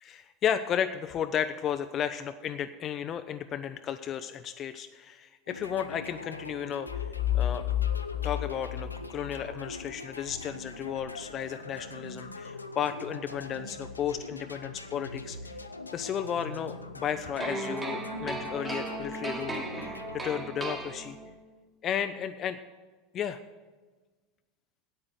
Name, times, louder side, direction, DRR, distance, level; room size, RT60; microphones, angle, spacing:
voice 1, 0.0-7.1 7.3-7.7 8.2-15.5 15.9-21.2 21.8-22.6 23.1-23.4, left 9 dB, 35° left, 9 dB, 0.5 m, -33 dB
sound 1, 5.5-21.4, left 2 dB, 90° left, 0.6 m, -43 dB
sound 2, 6.9-9.7, left 12 dB, 55° left, 1.4 m, -30 dB
sound 3, 17.4-21.5, right 2 dB, 20° right, 2.0 m, -36 dB
8.7 x 8.6 x 7.9 m, 1.3 s
figure-of-eight pair, 80°, 0 cm